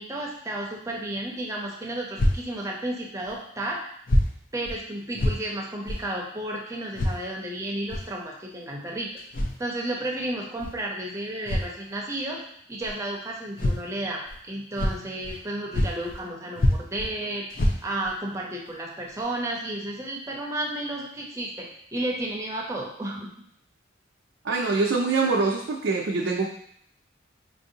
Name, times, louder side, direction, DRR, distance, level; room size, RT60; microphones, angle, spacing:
voice 1, 0.0-3.8 4.5-9.1 9.6-12.4 12.7-23.3, right 1 dB, 15° right, -2 dB, 0.6 m, -32 dB
sound 1, 2.2-2.4 3.3-3.4 4.1-4.3 4.6-4.8 5.1-5.4 5.9-6.0 6.9-7.2 7.9-8.1 9.2-9.6 10.6-10.7 11.4-11.7 12.8-12.9 13.6-13.8 14.3-14.4 14.7-15.4 15.7-16.2 16.5-17.1 17.5-18.1 18.6-18.7 19.2-19.3, left 1 dB, 45° left, 0.5 m, -25 dB
voice 2, 24.4-26.4, right 4 dB, 70° right, -2 dB, 0.5 m, -24 dB
4.4 x 2.7 x 2.7 m, 0.69 s
head